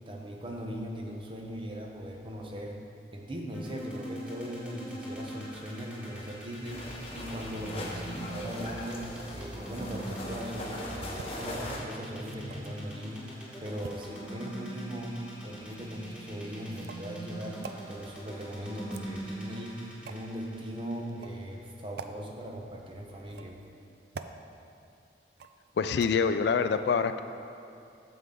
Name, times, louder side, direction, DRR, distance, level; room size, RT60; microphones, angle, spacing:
voice 1, 0.1-2.8 3.1-23.6, equal, 30° right, 1 dB, 0.8 m, -39 dB
sound 1, 3.5-21.7, right 1 dB, 5° right, 1.3 m, -42 dB
sound 2, 6.7-11.8, left 1 dB, 35° left, 0.9 m, -40 dB
sound 3, 11.1-11.3 12.1-12.8 13.8-14.7 15.7-15.9 16.7-17.1 17.6-17.8 18.8-19.4 20.0-20.3 21.1-21.4 22.0-22.1 23.2-23.7 24.1-24.4 25.4-25.7 26.0-26.1, right 5 dB, 60° right, 0.4 m, -45 dB
voice 2, 25.8-27.2, left 5 dB, 65° left, 10 dB, 0.3 m, -26 dB
9.3 x 7.1 x 3.8 m, 2.6 s
head